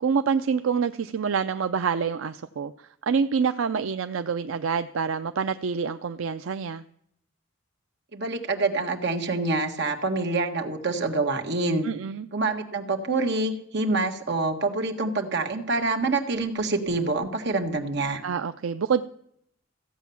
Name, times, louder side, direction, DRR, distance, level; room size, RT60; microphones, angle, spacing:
voice 1, 0.0-6.8 11.8-12.3 18.2-19.1, right 6 dB, 75° right, 10 dB, 0.5 m, -27 dB
voice 2, 8.1-11.9 12.3-18.2, right 3 dB, 60° right, 4 dB, 1.6 m, -26 dB
15.0 x 8.2 x 7.0 m, 0.69 s
head